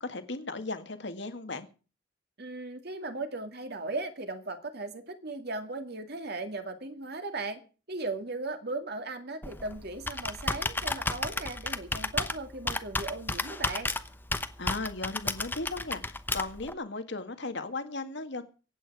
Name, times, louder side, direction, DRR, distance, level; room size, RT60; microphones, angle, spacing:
voice 1, 0.0-1.7 14.6-18.4, left 3 dB, 60° left, 1.8 m, -36 dB
voice 2, 2.4-7.6 7.9-13.9, right 2 dB, 55° right, 2.2 m, -37 dB
Computer keyboard, 9.4-16.7, left 2 dB, 10° left, 0.8 m, -33 dB
23.5 x 8.9 x 4.8 m
head